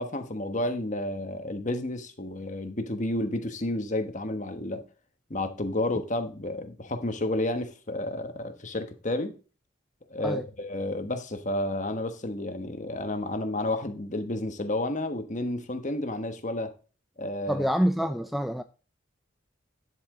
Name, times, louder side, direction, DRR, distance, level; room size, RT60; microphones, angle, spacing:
voice 1, 0.0-4.8 5.3-9.3 10.1-16.7 17.2-17.6 18.0-18.1, left 1 dB, 40° left, 1.2 m, -31 dB
voice 2, 17.5-18.6, equal, ahead, 0.3 m, -26 dB
9.9 x 7.9 x 3.7 m
head